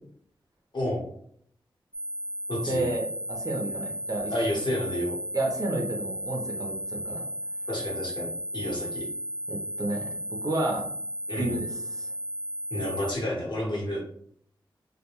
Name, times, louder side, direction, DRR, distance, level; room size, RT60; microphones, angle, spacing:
voice 1, 0.7-1.0 2.5-2.9 4.3-5.2 7.7-9.1 11.3-11.5 12.7-14.0, left 1 dB, 60° left, -4 dB, 1.1 m, -30 dB
sound 1, 1.9-13.1, equal, 10° left, 0.4 m, -35 dB
voice 2, 2.7-4.3 5.3-7.2 9.5-10.0 10.4-10.9 11.4-12.1, right 2 dB, 40° right, 0 dB, 0.7 m, -31 dB
2.3 x 2.1 x 2.9 m, 0.66 s
cardioid pair, 55°, 9 cm